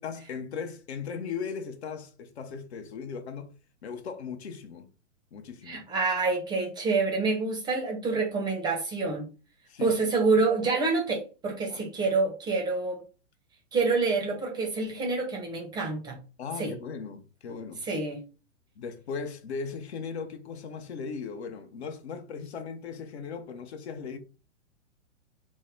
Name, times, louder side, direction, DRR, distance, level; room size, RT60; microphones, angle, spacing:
voice 1, 0.0-3.5 3.8-4.9 5.3-5.8 9.7-10.1 11.7-11.9 16.4-17.9 18.8-24.2, left 5 dB, 55° left, 0.7 m, -38 dB
voice 2, 5.7-9.3 9.8-13.0 13.7-16.2 16.6-16.7 17.9-18.2, right 4 dB, 10° right, 0.6 m, -27 dB
3.6 x 2.1 x 3.1 m
figure-of-eight pair, 110°, 38 cm